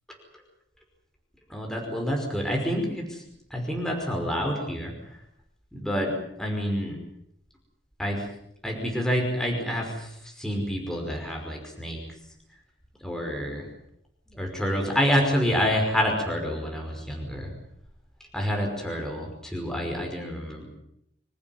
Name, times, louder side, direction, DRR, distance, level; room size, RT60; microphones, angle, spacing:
voice 1, 1.5-3.2 3.5-4.9 5.7-6.1 6.4-7.0 8.0-8.2 8.6-12.0 13.0-13.6 14.3-17.5 18.3-20.7, equal, 5° left, 1 dB, 5.4 m, -28 dB
27.5 x 14.5 x 9.6 m, 0.76 s
head